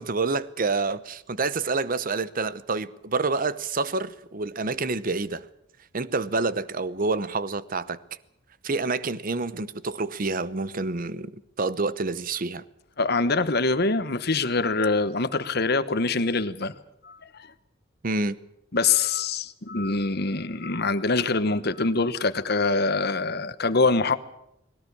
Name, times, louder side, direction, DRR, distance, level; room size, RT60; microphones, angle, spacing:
voice 1, 0.0-5.5 5.9-8.0 8.6-11.3 11.6-12.6 18.0-18.4, right 3 dB, 50° right, 0.9 m, -28 dB
voice 2, 13.0-16.7 17.0-17.5 18.7-24.2, left 3 dB, 55° left, 1.2 m, -24 dB
20.5 x 17.5 x 8.6 m
head